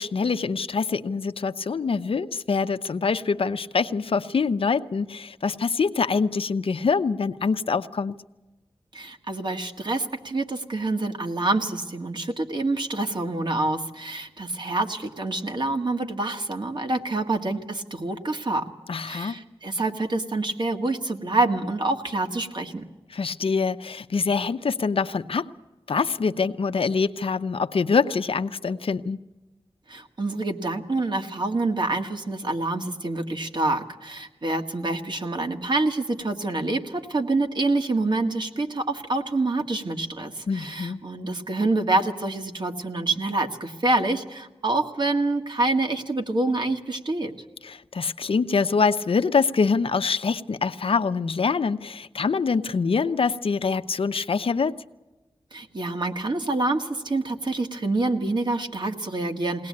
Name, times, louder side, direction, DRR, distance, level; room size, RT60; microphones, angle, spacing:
voice 1, 0.0-8.1 18.9-19.4 23.1-25.5 25.9-29.2 40.5-41.0 47.6-54.8, left 5 dB, 70° left, 10 dB, 0.7 m, -25 dB
voice 2, 8.9-18.6 19.0-22.8 29.9-47.3 55.5-59.7, right 2 dB, 50° right, 5 dB, 1.8 m, -26 dB
21.5 x 18.5 x 8.6 m, 1.1 s
wide cardioid pair, 95°, 10 cm